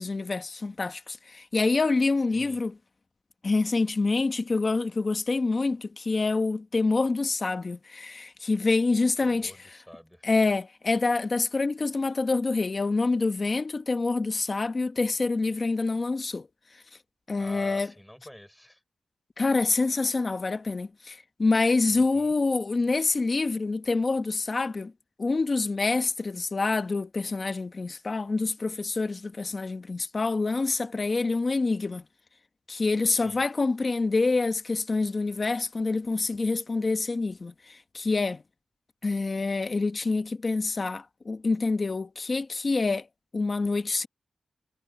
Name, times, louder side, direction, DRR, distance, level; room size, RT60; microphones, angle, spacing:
voice 1, 0.0-2.7 3.4-9.5 10.2-16.5 17.3-17.9 19.4-24.9 25.2-32.0 32.7-38.4 39.0-43.1 43.3-44.1, left 3 dB, 40° left, 1.3 m, -26 dB
voice 2, 9.2-10.3 17.4-18.8 21.9-22.3 33.1-33.4, equal, 5° left, 6.7 m, -47 dB
wide cardioid pair, 105°, 0 cm